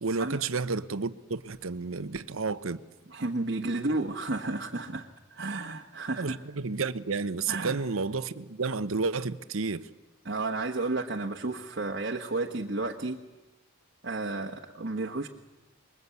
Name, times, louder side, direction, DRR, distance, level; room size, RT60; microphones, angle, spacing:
voice 1, 0.0-2.8 6.2-9.9, right 4 dB, 80° right, 0.9 m, -31 dB
voice 2, 3.1-6.4 7.5-7.8 10.2-13.2 14.0-15.3, right 2 dB, 55° right, 1.2 m, -32 dB
26.0 x 22.0 x 8.2 m
head